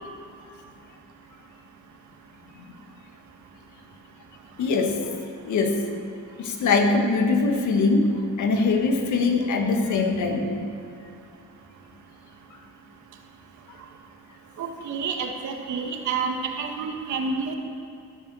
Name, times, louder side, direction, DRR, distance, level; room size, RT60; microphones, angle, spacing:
voice 1, 4.6-5.0 5.4-5.8 6.4-10.7 16.4-16.5, left 3 dB, 75° left, 3 dB, 1.8 m, -22 dB
voice 2, 14.6-17.5, right 5 dB, 75° right, 3 dB, 1.8 m, -29 dB
14.0 x 10.5 x 6.4 m, 2.5 s
cardioid pair, 90°, 30 cm